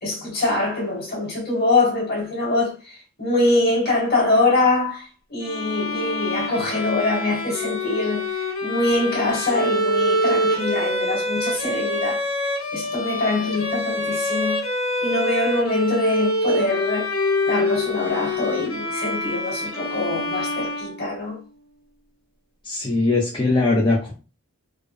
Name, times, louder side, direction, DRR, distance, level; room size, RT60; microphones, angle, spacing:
voice 1, 0.0-8.2 8.6-14.6 15.0-17.1 17.5-21.4, left 2 dB, 45° left, 1.9 m, -24 dB
Bowed string instrument, 5.4-21.4, left 1 dB, 65° left, 1.0 m, -26 dB
voice 2, 22.6-24.1, left 2 dB, 20° left, 0.5 m, -20 dB
3.4 x 2.0 x 3.5 m
head